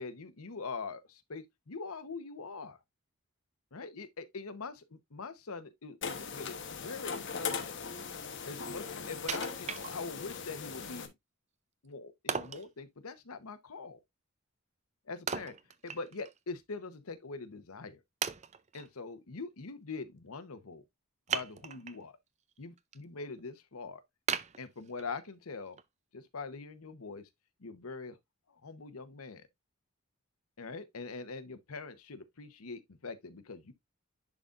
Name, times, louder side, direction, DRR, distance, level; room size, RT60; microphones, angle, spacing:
voice 1, 0.0-2.8 3.7-7.7 8.5-11.1 11.8-14.0 15.1-15.5 15.8-18.0 18.7-20.8 21.3-22.2 22.6-24.0 24.6-25.8 26.1-27.3 27.6-28.2 28.5-29.4 30.6-33.7, left 4 dB, 85° left, 0.9 m, -43 dB
sound 1, 6.0-11.1, left 6 dB, 55° left, 1.0 m, -39 dB
Wood, 9.3-10.4 10.9-11.0 12.3-12.7 15.3-16.4 16.7-16.8 17.5-17.6 18.2-18.9 21.3-22.0 22.5-23.0 23.4-23.5 24.3-25.3 25.8-25.9, right 7 dB, 30° right, 0.5 m, -37 dB
10.5 x 3.9 x 2.4 m
head